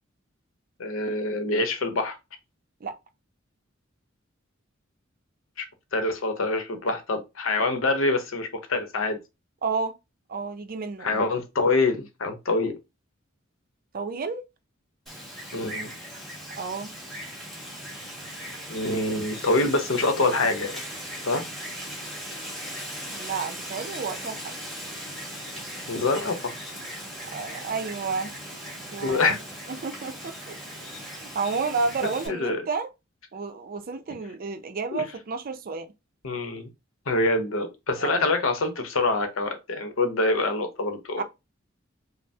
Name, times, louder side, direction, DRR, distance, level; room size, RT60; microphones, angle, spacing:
voice 1, 0.8-2.2 5.6-5.7 5.9-9.2 11.0-12.7 15.5-15.9 18.7-20.8 21.3-21.4 25.9-26.5 29.0-29.4 32.3-32.6 34.9-35.0 36.2-36.7 37.1-41.2, left 2 dB, 75° left, 0.8 m, -25 dB
voice 2, 9.6-10.0 10.3-11.2 13.9-14.4 16.6-16.9 23.1-24.5 27.3-28.4 28.9-29.4 29.7-30.6 30.9-32.9 33.3-35.9 38.0-38.3 41.2-41.3, right 4 dB, 45° right, 0.5 m, -31 dB
Wind, 15.1-32.3, equal, ahead, 1.7 m, -38 dB
5.3 x 2.0 x 2.7 m
head